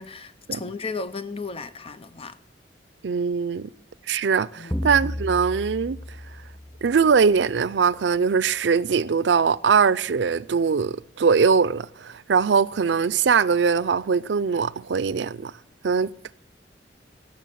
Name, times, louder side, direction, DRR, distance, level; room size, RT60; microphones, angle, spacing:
voice 1, 0.0-2.4 4.6-4.8, left 4 dB, 35° left, 0.8 m, -34 dB
voice 2, 3.0-3.7 4.1-6.0 6.8-15.5 15.8-16.3, right 5 dB, 90° right, 0.5 m, -21 dB
sound 1, 4.7-7.4, left 1 dB, 5° left, 0.5 m, -33 dB
17.5 x 6.4 x 8.4 m
head